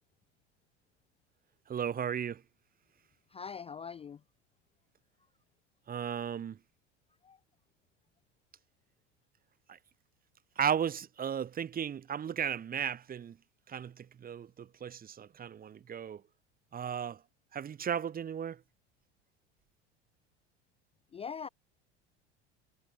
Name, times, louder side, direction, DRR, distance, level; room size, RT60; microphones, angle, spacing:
voice 1, 1.7-2.4 5.9-6.6 9.7-9.8 10.6-13.4 13.7-16.2 16.7-17.2 17.5-18.6, right 8 dB, 25° right, 0.9 m, -35 dB
voice 2, 3.3-4.2 7.2-7.4 21.1-21.5, left 6 dB, 20° left, 0.4 m, -42 dB
hypercardioid pair, 75°, 34 cm